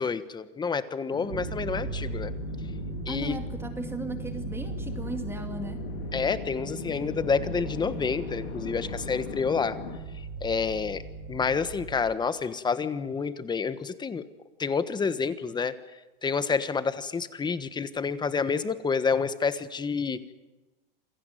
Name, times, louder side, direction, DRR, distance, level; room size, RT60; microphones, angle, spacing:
voice 1, 0.0-2.3 3.1-3.4 6.1-9.8 10.4-11.0 11.3-14.3 14.6-15.7 16.2-20.2, left 5 dB, 15° left, 13 dB, 1.3 m, -28 dB
sound 1, 1.1-10.0, left 8 dB, 90° left, 3.7 m, -40 dB
sound 2, 1.3-12.1, right 4 dB, 60° right, 5.2 m, -38 dB
voice 2, 3.1-5.8, right 2 dB, 10° right, 6 dB, 2.2 m, -36 dB
27.5 x 17.0 x 9.3 m, 1.1 s
supercardioid pair, 130°, 29 cm